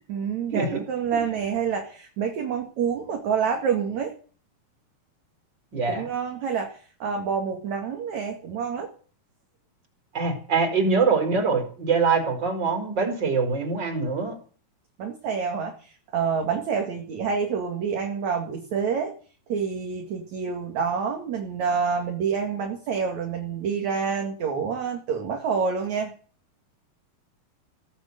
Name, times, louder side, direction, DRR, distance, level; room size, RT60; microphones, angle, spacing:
voice 1, 0.1-4.1 5.9-8.9 15.0-19.1 19.5-26.1, right 6 dB, 55° right, 2 dB, 3.2 m, -27 dB
voice 2, 5.7-6.1 10.1-14.4, right 4 dB, 30° right, 5 dB, 5.0 m, -24 dB
17.5 x 9.4 x 8.2 m, 0.41 s
omnidirectional pair, 4.3 m